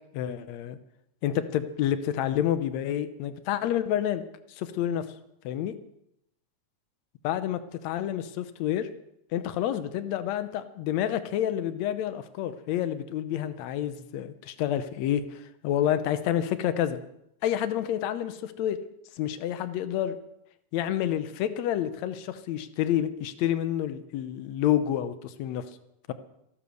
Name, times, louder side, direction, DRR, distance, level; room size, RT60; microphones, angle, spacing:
voice 1, 0.1-0.8 1.2-4.2 4.5-5.1 5.4-5.7 7.2-8.9 9.3-17.0 17.4-18.8 19.2-20.2 20.7-25.6, left 11 dB, 70° left, 12 dB, 1.7 m, -29 dB
14.5 x 12.5 x 6.5 m, 0.78 s
omnidirectional pair, 4.0 m